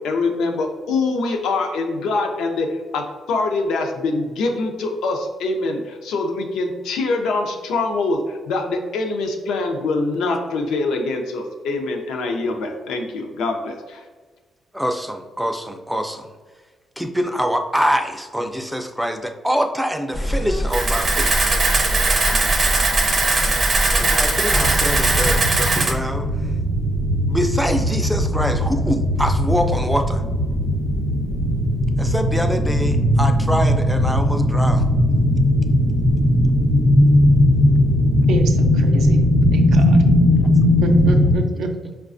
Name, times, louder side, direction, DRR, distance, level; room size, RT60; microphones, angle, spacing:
voice 1, 0.0-14.0, left 3 dB, 90° left, 4 dB, 0.5 m, -24 dB
voice 2, 14.7-16.3 17.0-21.3 24.0-26.3 27.3-30.2 32.0-34.8 37.2-37.3, equal, ahead, 5 dB, 0.3 m, -24 dB
sound 1, 20.1-25.4, equal, 50° left, 0.6 m, -24 dB
Camera, 20.7-25.9, right 3 dB, 50° right, 0.6 m, -20 dB
sound 2, 24.5-41.4, left 1 dB, 70° left, 1.0 m, -18 dB
voice 3, 38.3-40.0 40.8-41.9, right 3 dB, 90° right, 5 dB, 0.4 m, -27 dB
4.6 x 2.2 x 2.5 m, 1.4 s
cardioid pair, 115°, 0 cm